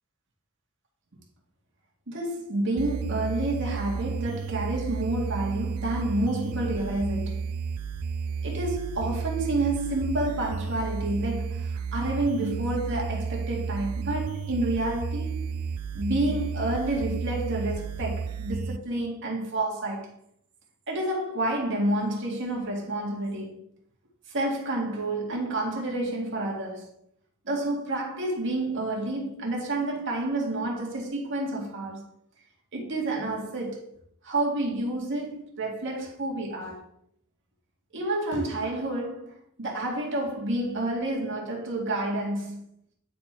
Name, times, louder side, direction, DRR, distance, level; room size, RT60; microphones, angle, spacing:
voice 1, 2.1-7.5 8.4-15.5 15.9-20.1 20.9-23.6 24.3-26.9 27.4-32.0 32.7-33.9 34.2-36.8 37.9-42.6, right 1 dB, 60° right, 2.1 m, -29 dB
sound 1, 2.8-18.8, right 5 dB, 90° right, 0.4 m, -32 dB
9.6 x 4.3 x 4.5 m
head